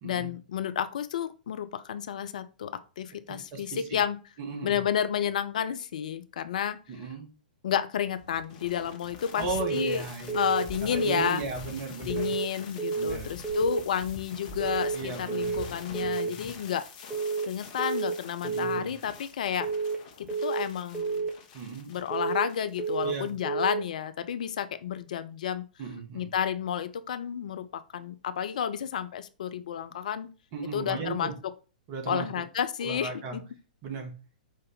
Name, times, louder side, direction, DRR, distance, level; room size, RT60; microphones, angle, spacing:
voice 1, 0.0-4.2 4.6-6.8 7.6-10.0 10.3-11.4 12.0-16.8 17.5-19.7 20.4-21.3 21.9-25.6 26.1-30.3 30.7-31.3 32.1-33.4, left 9 dB, 60° left, 12 dB, 0.4 m, -31 dB
voice 2, 3.3-4.0 4.4-4.8 6.9-7.3 9.4-10.5 10.8-12.3 12.9-13.4 14.9-15.7 16.0-16.5 18.4-18.9 21.5-21.9 23.0-23.3 25.8-26.3 30.5-31.3 31.9-32.3 32.8-33.4 33.8-34.1, right 4 dB, 40° right, 3 dB, 1.4 m, -36 dB
sound 1, 8.2-23.5, left 4 dB, 40° left, 1.1 m, -45 dB
sound 2, 9.6-10.0 10.3-10.7 10.9-11.3 12.1-12.5 12.8-13.2 13.4-13.8 14.6-15.0 15.3-15.7 15.9-16.3 17.1-17.5 17.8-18.2 18.4-18.8 19.6-20.0 20.3-20.7 20.9-21.3 22.1-22.5 22.8-23.2 23.4-23.8, right 5 dB, 10° right, 1.1 m, -30 dB
5.2 x 2.6 x 3.8 m, 0.33 s
figure-of-eight pair, 110°, 5 cm